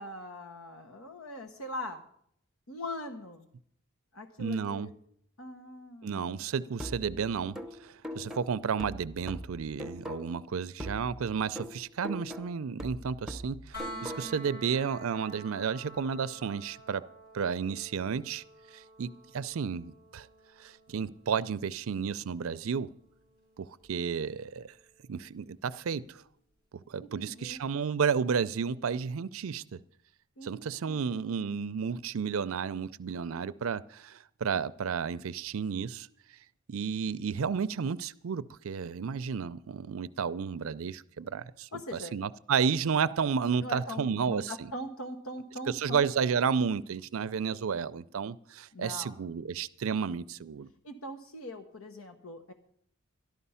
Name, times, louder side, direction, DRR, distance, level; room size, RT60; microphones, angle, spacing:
voice 1, 0.0-2.0 2.7-3.5 4.1-4.9 5.4-6.4 14.0-14.4 27.0-27.6 30.4-30.6 30.9-31.5 41.7-42.1 43.6-46.1 48.7-49.2 50.8-52.5, left 1 dB, 85° left, 1.1 m, -41 dB
voice 2, 4.4-4.9 6.0-17.0 17.3-18.4 18.7-20.3 20.6-22.9 23.6-24.7 25.1-26.2 26.9-29.8 30.4-36.1 36.7-41.7 42.1-44.5 45.7-50.7, right 6 dB, 75° right, 0.5 m, -32 dB
sound 1, 6.8-10.5 10.8-14.5, equal, ahead, 0.8 m, -42 dB
sound 2, 13.7-25.5 27.5-27.6, right 1 dB, 50° left, 6.4 m, -50 dB
13.0 x 12.0 x 5.6 m
head